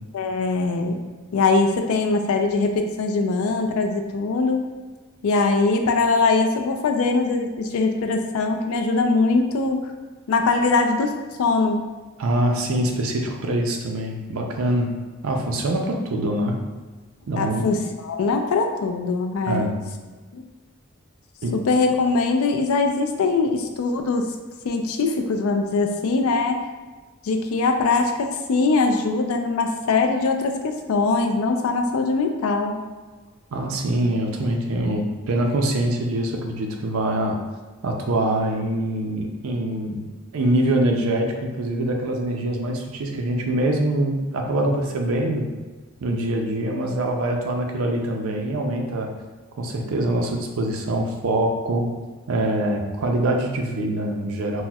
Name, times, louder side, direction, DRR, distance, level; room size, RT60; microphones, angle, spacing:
voice 1, 0.1-1.0 1.3-4.6 5.2-9.8 10.3-11.1 11.4-11.8 17.4-19.8 20.3-20.4 21.5-24.3 24.6-26.6 27.2-32.8, left 3 dB, 85° left, 5 dB, 0.4 m, -22 dB
voice 2, 12.2-14.9 15.2-16.6 17.3-17.7 19.5-19.8 21.4-21.5 33.5-37.4 37.8-40.1 40.3-45.5 46.0-49.1 49.6-51.9 52.3-54.6, right 1 dB, 80° right, 2 dB, 0.5 m, -24 dB
4.1 x 2.1 x 2.3 m, 1.3 s
head